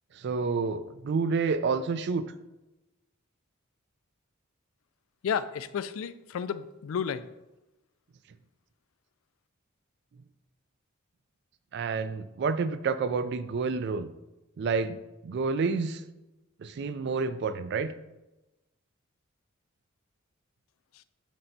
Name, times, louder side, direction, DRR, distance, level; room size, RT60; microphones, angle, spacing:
voice 1, 0.1-2.2 11.7-14.1 14.6-16.0 16.6-17.9, right 4 dB, 55° right, 13 dB, 0.3 m, -29 dB
voice 2, 5.2-7.3 20.9-21.0, left 7 dB, 75° left, 14 dB, 0.3 m, -32 dB
11.5 x 4.3 x 2.7 m, 1.0 s
head